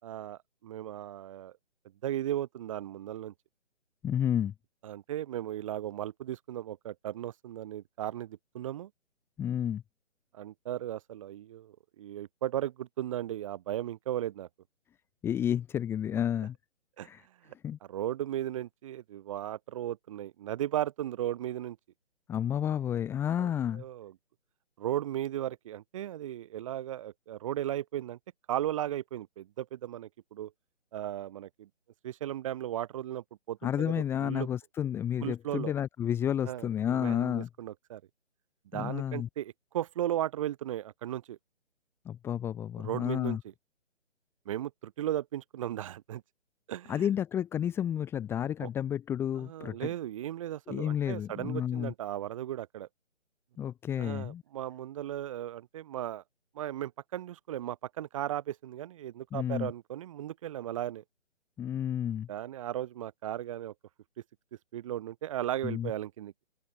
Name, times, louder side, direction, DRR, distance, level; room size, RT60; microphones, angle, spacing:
voice 1, 0.0-1.5 2.0-3.3 4.8-8.9 10.3-14.5 17.0-17.1 17.4-17.5 17.9-21.8 23.4-24.1 24.8-28.2 28.5-30.5 30.9-31.7 32.0-34.5 35.2-35.7 36.4-38.0 38.7-41.4 42.8-43.4 44.4-46.2 46.7-47.1 48.6-48.7 49.4-52.9 54.0-56.2 56.5-61.0 62.3-63.7 64.7-66.3, right 12 dB, 25° right, 4.7 m, -36 dB
voice 2, 4.0-4.5 9.4-9.8 15.2-16.6 17.0-17.2 17.6-17.8 22.3-23.8 33.6-37.5 38.7-39.3 42.1-43.4 46.9-49.9 50.7-51.9 53.6-54.4 59.3-59.7 61.6-62.3 65.6-65.9, left 9 dB, 5° left, 1.9 m, -31 dB
open air
figure-of-eight pair, 150°, 36 cm